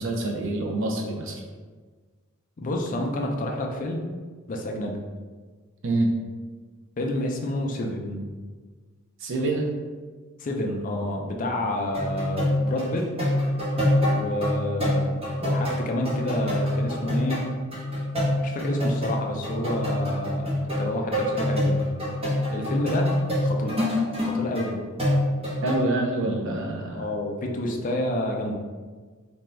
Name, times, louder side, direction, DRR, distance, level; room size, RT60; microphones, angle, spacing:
voice 1, 0.0-1.4 5.8-6.1 9.2-9.7 25.6-27.1, right 2 dB, 65° right, 1 dB, 0.5 m, -26 dB
voice 2, 2.6-4.1 4.5-5.0 7.0-8.3 10.4-13.1 14.1-15.1 15.4-17.4 18.4-20.5 20.8-21.9 22.5-23.1 23.4-23.8 24.2-24.9 26.9-28.5, left 1 dB, 40° left, 1 dB, 0.4 m, -29 dB
sound 1, 11.9-24.7 25.0-25.8, left 1 dB, 30° right, 0.8 m, -25 dB
2.6 x 2.3 x 3.1 m, 1.4 s
head